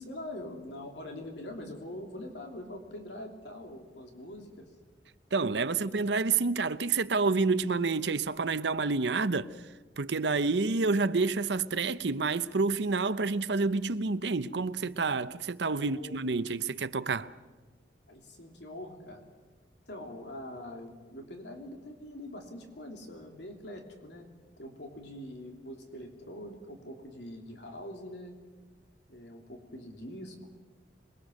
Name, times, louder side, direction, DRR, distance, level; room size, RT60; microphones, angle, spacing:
voice 1, 0.0-4.7 5.7-5.9 15.7-16.2 18.1-19.2 19.9-24.3 24.6-28.4 29.1-30.5, left 1 dB, 75° left, 3.0 m, -44 dB
voice 2, 5.3-9.5 10.0-17.3, right 4 dB, 75° right, 0.8 m, -28 dB
27.0 x 21.5 x 6.5 m
head